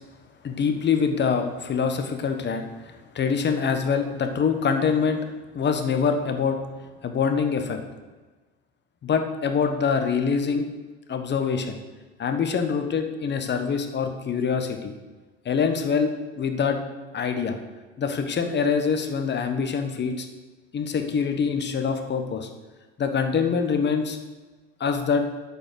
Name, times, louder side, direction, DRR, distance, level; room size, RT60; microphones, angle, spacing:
voice 1, 0.4-5.2 5.5-6.6 7.0-7.8 9.0-10.7 11.1-11.8 12.2-14.9 15.4-16.8 17.1-17.6 18.0-20.3 20.7-22.5 23.0-24.2 24.8-25.3, left 6 dB, 35° left, 6 dB, 1.3 m, -25 dB
8.7 x 5.4 x 6.8 m, 1.3 s
hypercardioid pair, 75°, 31 cm